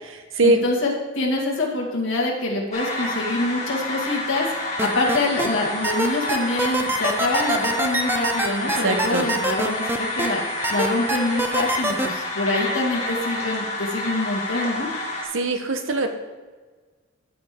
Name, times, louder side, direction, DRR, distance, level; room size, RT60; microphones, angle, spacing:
voice 1, 0.4-14.9, left 2 dB, 70° left, -2 dB, 1.9 m, -25 dB
sound 1, 2.7-15.2, left 1 dB, 30° left, 2.1 m, -29 dB
sound 2, 4.8-5.5 5.8-10.3 10.6-12.1, right 2 dB, 10° right, 0.5 m, -24 dB
voice 2, 8.7-9.3 15.3-16.1, right 2 dB, 70° right, 6 dB, 0.9 m, -21 dB
14.0 x 5.1 x 3.6 m, 1.4 s
head